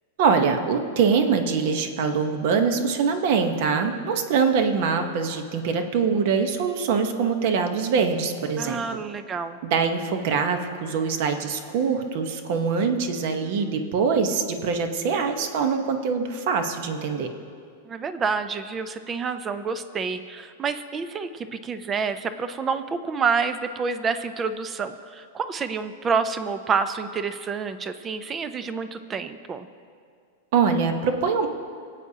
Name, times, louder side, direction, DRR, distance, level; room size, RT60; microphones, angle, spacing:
voice 1, 0.2-8.8 9.6-17.3 30.5-31.5, right 5 dB, 45° right, 7 dB, 1.0 m, -23 dB
voice 2, 8.6-9.6 17.9-29.7, right 5 dB, 15° right, 11 dB, 0.4 m, -28 dB
24.0 x 8.4 x 2.8 m, 2.2 s
supercardioid pair, 170°, 0 cm